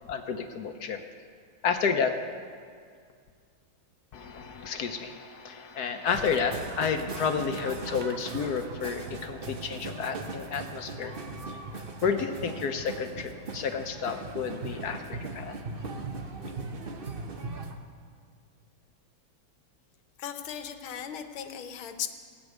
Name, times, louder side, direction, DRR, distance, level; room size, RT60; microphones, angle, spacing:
voice 1, 0.1-1.0 1.6-2.2 4.1-11.1 11.4-11.6 12.0-15.6, left 6 dB, 60° left, 6 dB, 1.1 m, -31 dB
sound 1, 6.1-17.7, right 3 dB, 50° right, 0.7 m, -39 dB
voice 2, 20.2-22.1, left 9 dB, 80° left, 8 dB, 1.7 m, -37 dB
16.5 x 7.2 x 9.2 m, 2.1 s
omnidirectional pair, 2.2 m